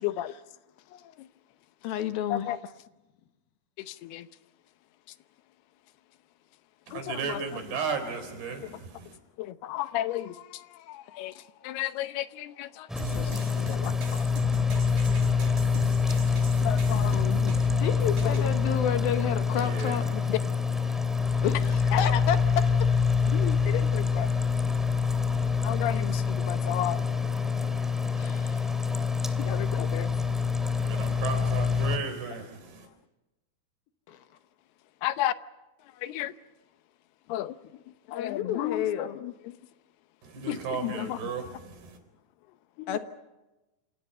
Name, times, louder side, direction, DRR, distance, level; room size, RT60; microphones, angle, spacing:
voice 1, 0.0-0.3 2.3-2.6 3.9-4.3 6.9-7.0 7.3-7.4 9.4-10.3 10.9-11.3 11.6-12.9 13.3-13.4 13.7-14.0 16.6-17.6 18.2-18.4 20.3-20.4 21.9-22.0 23.3-24.3 25.6-27.0 29.4-30.1 35.0-35.3 36.0-36.3 37.3-37.5 38.1-39.3 40.5-40.6 40.8-41.2 42.8-43.0, left 13 dB, 90° left, 3.0 m, -32 dB
voice 2, 1.8-2.5 13.1-13.8 17.8-20.0 21.4-23.0 28.2-28.6 34.1-34.2 38.1-39.2 42.9-43.0, left 9 dB, 75° left, 3.2 m, -31 dB
voice 3, 6.9-9.2 19.6-20.0 20.4-20.6 30.8-32.9 40.2-42.0, right 5 dB, 85° right, 5.8 m, -35 dB
sound 1, 12.9-32.0, left 5 dB, ahead, 1.5 m, -26 dB
sound 2, 13.0-18.5, right 2 dB, 50° right, 7.9 m, -40 dB
28.0 x 28.0 x 5.5 m
omnidirectional pair, 4.5 m